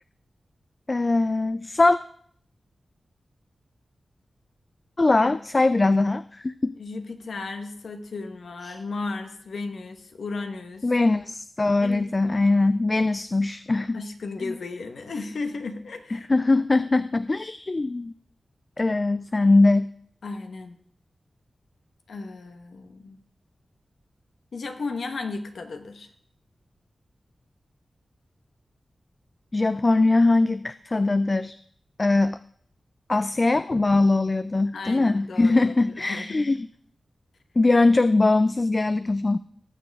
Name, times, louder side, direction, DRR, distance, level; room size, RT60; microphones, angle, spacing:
voice 1, 0.9-2.0 5.0-6.7 8.6-8.8 10.8-14.0 14.4-14.5 16.1-18.1 18.8-19.9 29.5-31.5 32.0-32.4 33.1-36.6 37.6-39.4, left 2 dB, 40° left, 13 dB, 0.3 m, -21 dB
voice 2, 6.8-10.9 11.8-12.4 13.9-16.3 20.2-20.7 22.1-23.2 24.5-26.1 34.7-36.5, left 3 dB, 80° left, 6 dB, 1.1 m, -35 dB
18.5 x 6.7 x 3.5 m, 0.62 s
cardioid pair, 50°, 0 cm